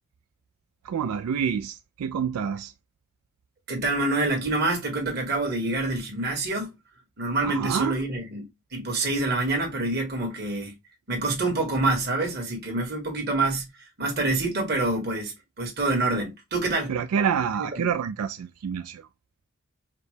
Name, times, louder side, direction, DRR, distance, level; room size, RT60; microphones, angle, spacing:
voice 1, 0.8-2.7 7.4-8.0 16.9-19.1, right 7 dB, 90° right, 0.3 m, -27 dB
voice 2, 3.7-6.7 7.2-8.4 8.7-10.7 11.1-13.7 14.0-16.9 17.6-17.7, right 2 dB, 45° right, 1.7 m, -26 dB
4.9 x 2.2 x 3.2 m
head